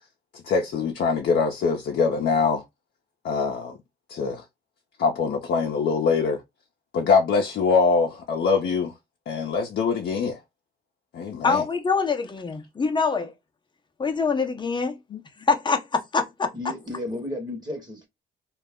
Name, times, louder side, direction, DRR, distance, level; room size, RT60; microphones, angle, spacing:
voice 1, 0.3-2.6 3.2-3.8 4.1-4.4 5.0-6.4 6.9-8.9 9.3-10.4 11.1-11.6 15.1-15.2, left 5 dB, 60° left, 0.6 m, -23 dB
voice 2, 11.4-13.3 14.0-15.0 15.4-16.5, left 4 dB, 25° left, 0.6 m, -24 dB
voice 3, 16.5-18.1, left 1 dB, 20° right, 1.0 m, -33 dB
2.3 x 2.0 x 3.4 m
cardioid pair, 90°, 20 cm